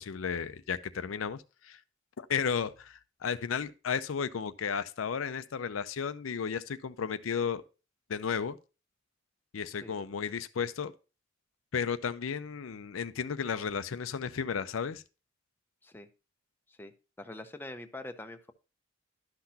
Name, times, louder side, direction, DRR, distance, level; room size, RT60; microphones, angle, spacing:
voice 1, 0.0-1.8 2.2-7.6 8.1-8.6 9.5-10.9 11.7-15.0, left 6 dB, 90° left, 0.5 m, -33 dB
voice 2, 17.2-18.5, left 1 dB, 10° left, 0.6 m, -44 dB
11.5 x 5.9 x 2.8 m
head